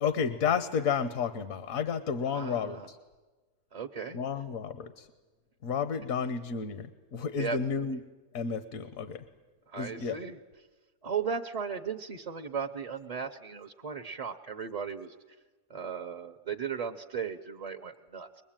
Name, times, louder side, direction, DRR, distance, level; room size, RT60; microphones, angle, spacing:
voice 1, 0.0-3.0 4.1-5.1 5.6-8.0 8.3-9.2 9.7-10.2, left 6 dB, 65° left, 11 dB, 1.3 m, -31 dB
voice 2, 2.3-2.9 3.7-4.2 7.3-7.6 9.7-10.4 11.0-15.1 15.7-18.4, right 6 dB, 35° right, 5 dB, 0.6 m, -36 dB
23.0 x 20.5 x 8.9 m, 1.3 s
omnidirectional pair, 1.6 m